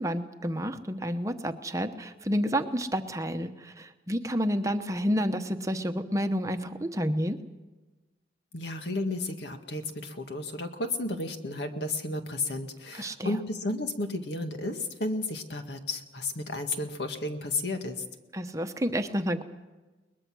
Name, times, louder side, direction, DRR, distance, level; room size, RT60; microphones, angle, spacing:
voice 1, 0.0-7.4 12.9-13.4 18.3-19.4, equal, 20° right, 7 dB, 0.9 m, -30 dB
voice 2, 8.5-18.0, left 2 dB, 75° left, 5 dB, 1.9 m, -33 dB
22.0 x 20.5 x 6.2 m, 1.2 s
head